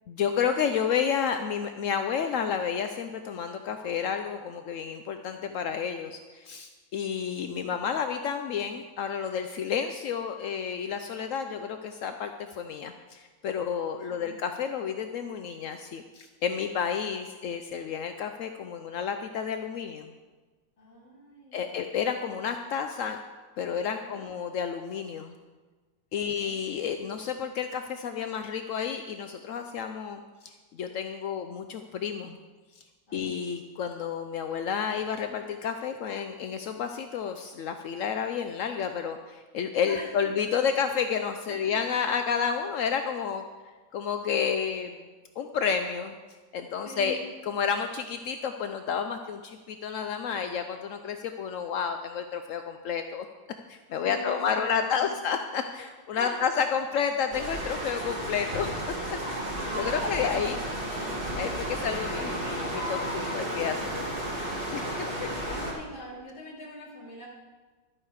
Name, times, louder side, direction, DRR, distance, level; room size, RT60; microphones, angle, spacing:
voice 1, 0.1-20.1 21.5-23.2 23.6-25.3 26.1-32.4 32.8-32.9 33.1-43.4 43.9-45.1 45.4-46.2 46.5-47.2 47.4-53.2 53.7-58.7 59.5-60.6 61.4-64.0 64.7-64.8 65.2-65.3, left 7 dB, 80° left, 7 dB, 0.7 m, -30 dB
voice 2, 20.8-21.7 24.0-24.2 26.1-26.6 33.1-33.3 39.9-40.3 41.5-41.8 46.8-47.2 54.0-55.1 56.2-56.4 59.7-61.2 65.5-67.3, equal, 65° left, -7 dB, 3.6 m, -43 dB
sound 1, 57.3-65.7, right 1 dB, 25° right, 2.2 m, -33 dB
12.5 x 8.7 x 4.8 m, 1.3 s
omnidirectional pair, 2.0 m